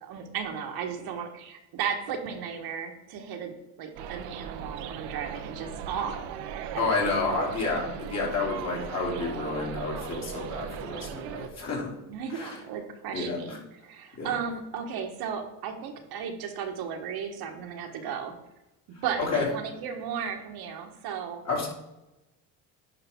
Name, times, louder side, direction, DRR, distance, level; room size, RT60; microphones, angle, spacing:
voice 1, 0.0-6.2 6.7-7.5 12.1-18.3 19.0-21.4, right 7 dB, 65° right, 4 dB, 1.4 m, -35 dB
sound 1, 4.0-11.5, right 8 dB, 85° right, 0.8 m, -38 dB
voice 2, 6.8-11.9 12.3-12.6 13.1-13.6 14.2-14.3 19.2-19.5 21.4-21.7, left 4 dB, 40° left, -2 dB, 3.1 m, -30 dB
10.0 x 5.2 x 3.6 m, 0.96 s
supercardioid pair, 95°, 40 cm